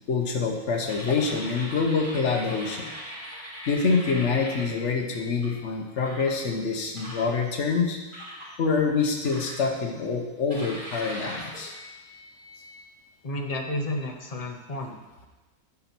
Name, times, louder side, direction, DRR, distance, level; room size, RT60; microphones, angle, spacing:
voice 1, 0.1-2.9 3.7-8.0 8.6-11.7, left 4 dB, 55° left, 2 dB, 1.2 m, -26 dB
sound 1, 0.9-5.5 6.0-6.4 7.0-7.7 8.1-8.5 9.2-10.0 10.5-12.8, equal, 30° right, 3.3 m, -40 dB
voice 2, 13.2-15.3, left 1 dB, 35° left, 2 dB, 0.6 m, -32 dB
9.3 x 5.6 x 4.5 m, 1.2 s
omnidirectional pair, 1.6 m